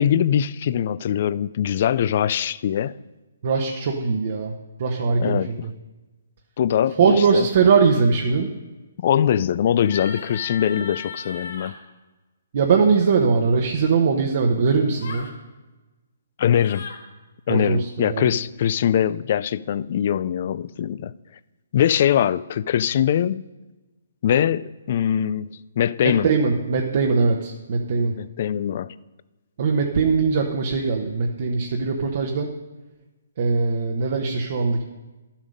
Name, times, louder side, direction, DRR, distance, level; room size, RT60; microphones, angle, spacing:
voice 1, 0.0-3.0 5.2-5.7 6.6-7.5 9.0-11.8 16.4-16.9 17.5-21.1 21.7-23.5 24.2-26.3 28.1-28.9, left 9 dB, 45° left, 0.3 m, -22 dB
voice 2, 3.4-4.5 4.8-5.5 7.0-8.5 12.5-15.3 17.5-18.3 26.0-28.1 29.6-32.5 33.4-34.8, right 5 dB, 50° right, 1.0 m, -21 dB
sound 1, 9.8-11.7 15.0-15.3 16.5-17.0, left 5 dB, 70° left, 1.9 m, -36 dB
11.5 x 7.3 x 5.2 m
hypercardioid pair, 160°, 0 cm